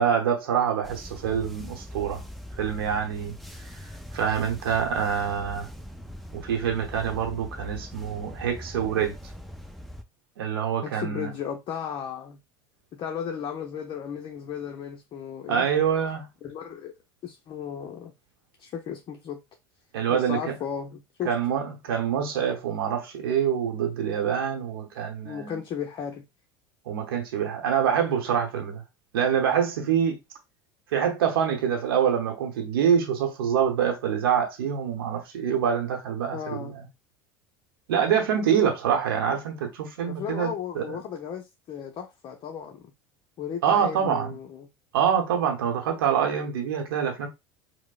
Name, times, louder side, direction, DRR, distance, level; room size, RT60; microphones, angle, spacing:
voice 1, 0.0-2.2 2.6-3.3 4.1-5.7 6.3-9.1 10.4-11.3 15.5-16.3 19.9-20.5 21.2-25.6 26.9-28.8 29.1-30.2 30.9-36.9 37.9-41.0 43.6-44.4 44.9-47.3, right 8 dB, 75° right, 0.8 m, -25 dB
sound 1, 0.8-10.0, equal, ahead, 0.5 m, -41 dB
voice 2, 10.8-12.4 12.9-15.7 16.4-16.9 17.2-18.1 18.6-19.4 20.1-21.3 25.2-26.2 36.3-36.7 40.1-42.9 43.4-44.7, left 8 dB, 40° left, 0.6 m, -35 dB
4.6 x 2.0 x 2.3 m
hypercardioid pair, 70°, 12 cm